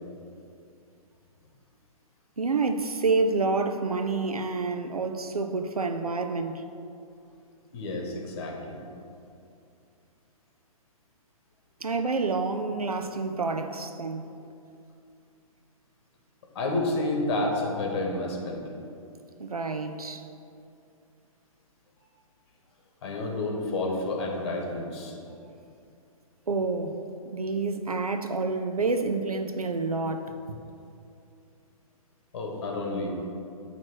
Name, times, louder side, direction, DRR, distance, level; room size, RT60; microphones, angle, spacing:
voice 1, 2.4-6.6 11.8-14.3 19.4-20.3 26.5-27.0 27.3-30.6, right 3 dB, 85° right, 0.6 m, -28 dB
voice 2, 7.7-8.8 16.5-18.6 23.0-25.2 32.3-33.2, left 2 dB, 45° left, 1.5 m, -30 dB
9.2 x 3.2 x 6.1 m
figure-of-eight pair, 125°, 18 cm